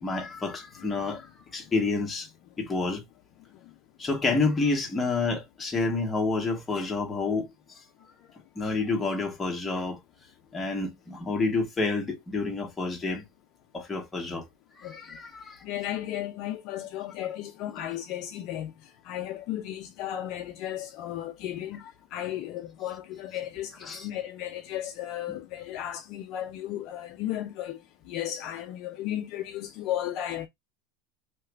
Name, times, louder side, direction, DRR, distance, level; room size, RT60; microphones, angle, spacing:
voice 1, 0.0-2.3 2.6-3.0 4.0-7.8 8.6-10.0 10.5-13.2 13.7-14.5 14.8-15.6 23.8-24.1 25.3-25.4, left 3 dB, 10° left, 0.9 m, -29 dB
voice 2, 15.6-18.7 19.1-21.8 22.1-27.8 28.1-30.5, left 12 dB, 45° left, 0.5 m, -34 dB
2.9 x 2.4 x 3.2 m
supercardioid pair, 170°, 0 cm